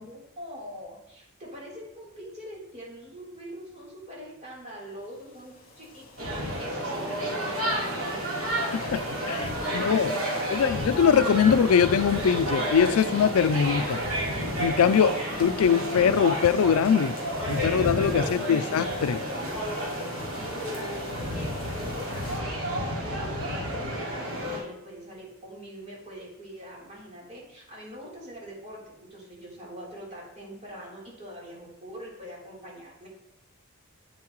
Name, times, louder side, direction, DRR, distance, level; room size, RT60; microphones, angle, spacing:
voice 1, 0.0-8.5 9.0-10.8 20.3-22.6 23.0-33.1, equal, 35° right, 3.6 m, -43 dB
sound 1, 4.7-22.4, left 2 dB, 45° left, 2.7 m, -46 dB
sound 2, 6.2-24.6, equal, 70° right, 3.5 m, -31 dB
voice 2, 8.6-9.4 9.7-10.2 10.5-14.0 14.6-17.1 17.5-19.2, left 7 dB, 80° left, 0.4 m, -22 dB
sound 3, 12.5-24.0, left 1 dB, 55° right, 1.8 m, -50 dB
9.4 x 8.6 x 3.1 m
head